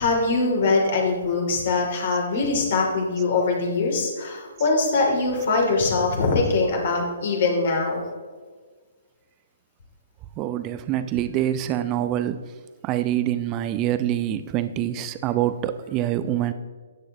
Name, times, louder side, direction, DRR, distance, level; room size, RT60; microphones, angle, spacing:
voice 1, 0.0-8.0, left 3 dB, 50° left, 0 dB, 2.9 m, -22 dB
voice 2, 10.4-12.4 12.8-16.5, right 12 dB, 25° right, 12 dB, 0.6 m, -25 dB
13.0 x 9.8 x 3.0 m, 1.5 s
figure-of-eight pair, 125°, 0 cm